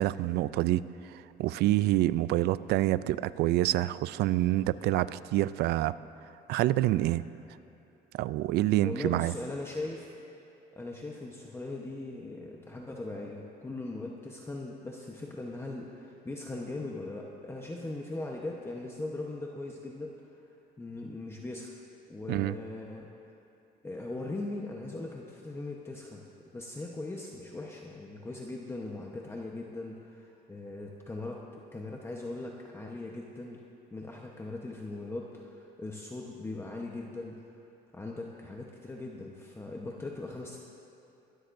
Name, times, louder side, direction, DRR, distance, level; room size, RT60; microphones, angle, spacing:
voice 1, 0.0-5.9 6.5-7.2 8.1-9.3 22.3-22.5, right 15 dB, 75° right, 16 dB, 0.4 m, -27 dB
voice 2, 8.8-10.1 10.8-20.3 20.8-21.7 22.1-23.1 23.8-26.2 26.5-31.4 31.7-33.6 33.9-37.3 37.9-40.6, left 2 dB, 15° left, -1 dB, 1.0 m, -39 dB
23.0 x 13.0 x 2.6 m, 2.7 s
cardioid pair, 110°, 17 cm